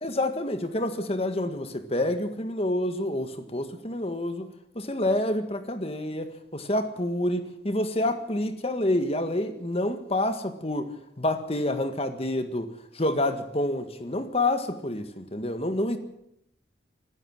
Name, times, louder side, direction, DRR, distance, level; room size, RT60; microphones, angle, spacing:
voice 1, 0.0-4.5 4.7-10.9 11.2-12.7 12.9-16.0, left 1 dB, 30° left, 8 dB, 1.7 m, -28 dB
25.5 x 13.0 x 7.8 m, 0.80 s
head